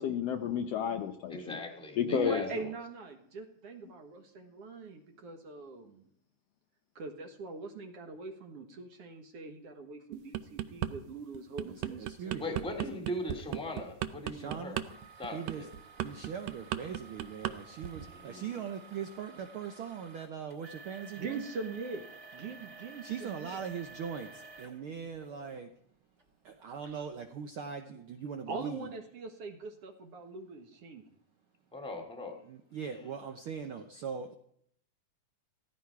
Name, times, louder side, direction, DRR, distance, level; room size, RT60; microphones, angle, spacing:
voice 1, 0.0-1.6 2.0-2.5, left 8 dB, 70° left, 5 dB, 1.6 m, -31 dB
voice 2, 1.3-2.7 12.4-14.8 15.2-15.7 18.1-18.4 31.7-32.4, left 1 dB, ahead, 3 dB, 1.4 m, -39 dB
voice 3, 2.1-6.1 7.0-12.4 21.2-22.1 22.3-23.6 26.8-27.1 28.5-31.0, right 4 dB, 55° right, 5 dB, 2.1 m, -42 dB
sound 1, 10.1-10.9 11.3-17.6 17.8-18.1, right 12 dB, 75° right, 1.8 m, -35 dB
voice 4, 11.6-12.7 14.2-14.8 15.3-15.7 16.0-21.5 23.0-25.7 26.4-28.9 32.4-34.3, right 7 dB, 90° right, 6 dB, 1.1 m, -41 dB
sound 2, 12.6-12.7 13.4-13.6 14.8-25.6 26.2-26.3 26.9-27.0, right 4 dB, 30° right, 1.1 m, -52 dB
16.0 x 15.0 x 4.7 m, 0.68 s
omnidirectional pair, 3.6 m